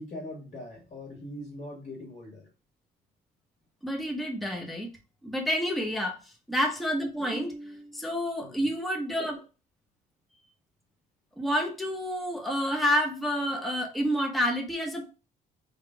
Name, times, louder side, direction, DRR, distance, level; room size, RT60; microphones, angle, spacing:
voice 1, 0.0-2.5 8.4-8.6, left 1 dB, 45° left, 1.7 m, -41 dB
voice 2, 3.8-4.9 5.2-6.2 6.5-9.4 11.4-15.1, equal, ahead, 0.8 m, -29 dB
3.5 x 2.4 x 4.5 m
cardioid pair, 110°, 17 cm